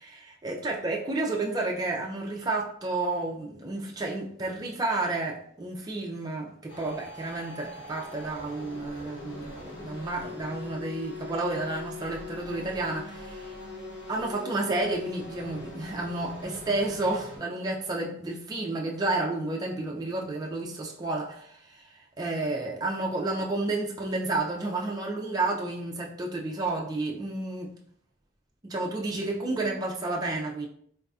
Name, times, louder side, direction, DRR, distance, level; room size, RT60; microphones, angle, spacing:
voice 1, 0.0-13.5 14.1-27.7 28.6-30.7, right 2 dB, 20° right, -2 dB, 0.3 m, -31 dB
sound 1, 6.7-17.4, left 2 dB, 65° left, 1.1 m, -42 dB
4.0 x 2.6 x 2.3 m, 0.64 s
head